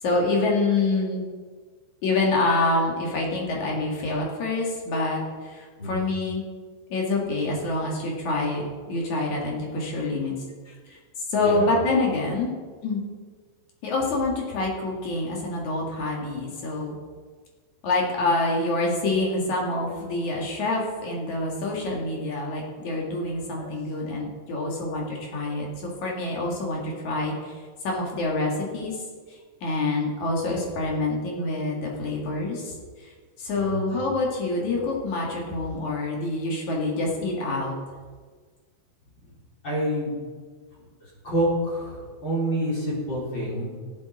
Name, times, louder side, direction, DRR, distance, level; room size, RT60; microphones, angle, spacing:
voice 1, 0.0-1.2 2.0-6.4 6.9-10.3 10.7-11.0 11.3-12.5 12.8-13.0 13.8-16.9 17.8-29.0 29.3-37.7, left 2 dB, 50° left, -2 dB, 2.6 m, -26 dB
voice 2, 11.4-11.7 23.6-23.7 33.5-33.9 39.2-39.3 39.6-40.1 41.0-43.7, equal, 25° left, -7 dB, 4.0 m, -28 dB
18.5 x 8.6 x 4.2 m, 1.5 s
omnidirectional pair, 5.5 m